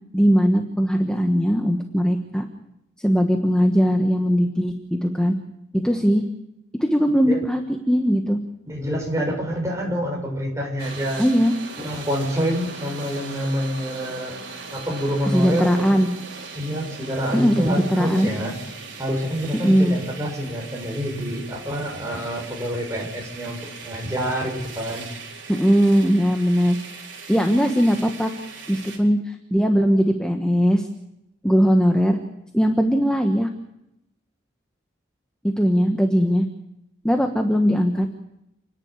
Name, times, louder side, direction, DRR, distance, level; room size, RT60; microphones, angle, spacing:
voice 1, 0.1-2.5 3.0-5.4 5.7-6.2 6.8-7.6 7.9-8.4 11.2-11.5 15.3-16.1 17.3-18.3 19.6-20.0 25.5-26.8 27.3-28.3 28.7-30.9 31.4-32.2 32.5-33.5 35.4-36.4 37.0-38.1, equal, 5° left, 4 dB, 1.3 m, -19 dB
voice 2, 8.7-11.2 11.8-14.4 14.7-16.0 16.5-18.5 19.0-25.1, equal, 15° right, -1 dB, 6.3 m, -27 dB
sound 1, 10.8-29.0, right 4 dB, 65° right, 4.5 m, -39 dB
29.5 x 11.0 x 9.8 m, 0.86 s
head